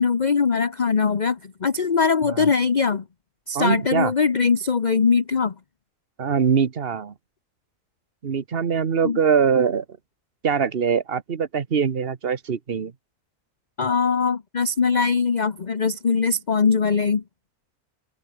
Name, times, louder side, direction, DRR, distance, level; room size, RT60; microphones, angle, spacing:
voice 1, 0.0-3.0 3.5-5.5 9.0-9.2 13.8-17.2, left 5 dB, 35° left, 0.9 m, -21 dB
voice 2, 3.5-4.1 6.2-7.1 8.2-9.8 10.4-12.9, right 6 dB, 40° right, 1.3 m, -22 dB
omnidirectional pair, 1.6 m